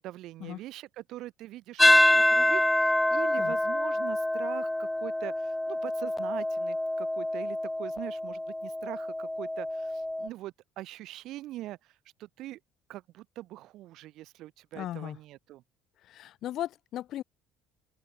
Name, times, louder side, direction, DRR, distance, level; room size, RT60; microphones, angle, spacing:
voice 1, 0.0-11.9 12.2-12.6 12.9-15.6, right 15 dB, 60° right, 6.1 m, -42 dB
sound 1, 1.8-10.3, left 1 dB, 5° left, 0.9 m, -26 dB
voice 2, 14.7-15.2 16.1-17.2, left 13 dB, 50° left, 0.7 m, -36 dB
open air
cardioid pair, 145°, 0 cm